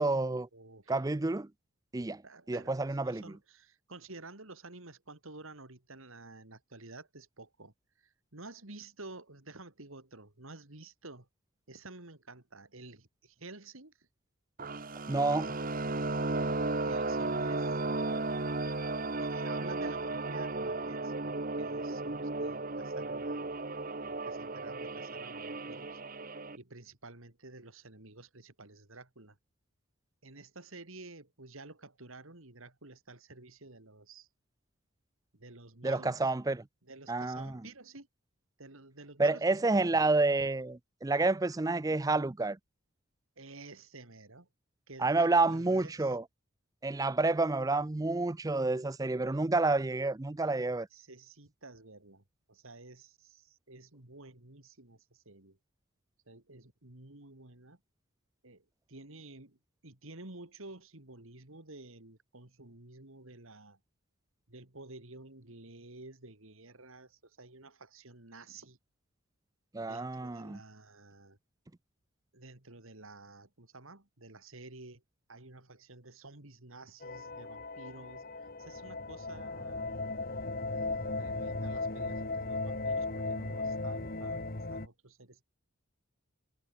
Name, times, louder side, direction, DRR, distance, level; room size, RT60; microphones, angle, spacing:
voice 1, 0.0-0.5 0.9-1.5 1.9-2.2 2.5-3.2 15.1-15.6 35.8-36.6 37.1-37.5 39.2-42.6 45.0-46.2 46.8-50.9 69.7-70.6, right 3 dB, 15° right, 0.4 m, -29 dB
voice 2, 0.5-1.1 2.2-11.3 11.7-14.1 16.4-17.8 19.2-23.5 24.1-26.3 26.6-29.4 30.2-34.3 35.3-36.3 36.8-38.1 38.6-40.1 43.4-44.5 44.9-46.2 50.9-55.6 56.3-57.8 58.4-63.8 64.5-68.8 69.8-71.4 72.3-75.0 75.3-79.9 80.7-85.4, right 2 dB, 70° right, 3.0 m, -51 dB
sound 1, 14.6-26.6, right 2 dB, 40° right, 1.4 m, -34 dB
sound 2, 77.0-84.9, left 3 dB, 45° left, 1.7 m, -36 dB
head